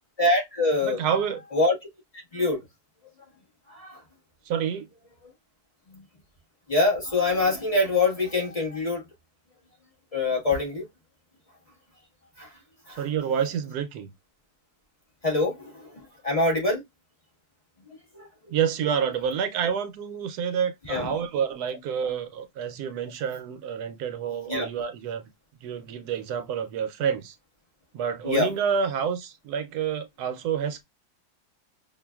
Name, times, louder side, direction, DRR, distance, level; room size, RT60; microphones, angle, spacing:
voice 1, 0.2-1.0 1.5-1.7 2.3-2.6 3.7-4.0 5.9-6.0 6.7-9.0 10.1-10.8 12.4-12.5 12.9-13.0 15.2-16.8 18.1-18.3 20.9-21.1 24.5-24.7 28.2-28.5, left 2 dB, 25° left, 1.4 m, -24 dB
voice 2, 0.8-1.4 4.5-4.9 12.9-14.1 18.5-25.2 25.6-27.4 27.9-30.8, right 7 dB, 75° right, 1.1 m, -28 dB
5.4 x 2.5 x 2.2 m
omnidirectional pair, 1.7 m